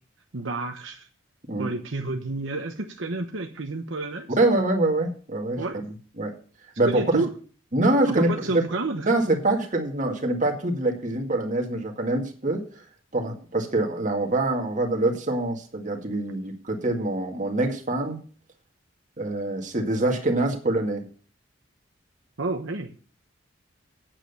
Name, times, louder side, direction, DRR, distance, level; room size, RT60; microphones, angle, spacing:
voice 1, 0.3-1.1 1.6-4.3 5.6-5.8 6.8-7.3 8.1-9.1 22.4-22.9, right 2 dB, 75° right, 4 dB, 1.0 m, -30 dB
voice 2, 4.4-6.3 6.8-7.0 7.7-8.6 9.0-12.7 13.1-18.2 19.2-21.0, right 2 dB, 40° right, 2 dB, 2.0 m, -25 dB
9.0 x 7.6 x 6.8 m, 0.42 s
head